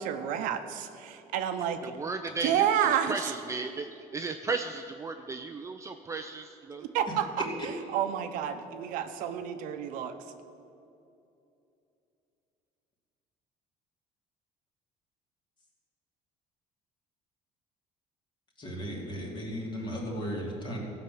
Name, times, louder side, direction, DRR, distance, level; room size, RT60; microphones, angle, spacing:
voice 1, 0.0-1.9 2.4-3.3 6.8-10.2, right 9 dB, 75° right, 8 dB, 0.8 m, -30 dB
voice 2, 1.8-6.8, right 4 dB, 20° right, 6 dB, 0.4 m, -35 dB
voice 3, 18.6-20.8, equal, 35° left, -1 dB, 2.7 m, -35 dB
15.0 x 5.9 x 7.6 m, 2.7 s
cardioid pair, 125°, 14 cm